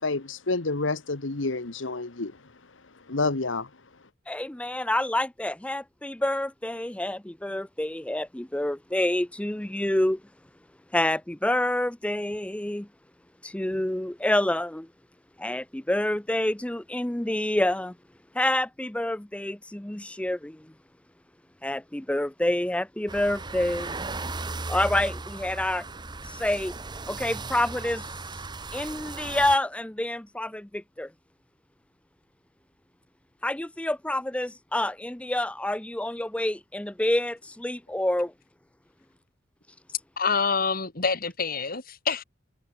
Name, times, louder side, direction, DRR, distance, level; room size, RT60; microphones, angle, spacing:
voice 1, 0.0-4.1, left 3 dB, 85° left, 1.4 m, -30 dB
voice 2, 4.3-10.2 10.9-12.9 13.4-14.9 15.4-18.0 18.3-20.7 21.6-24.1 24.7-25.9 26.2-26.7 27.1-28.0 28.7-31.1 33.4-38.3, left 1 dB, 5° left, 0.5 m, -28 dB
sound 1, 23.1-29.6, right 3 dB, 25° right, 1.0 m, -36 dB
voice 3, 40.2-42.2, left 5 dB, 50° left, 2.4 m, -26 dB
head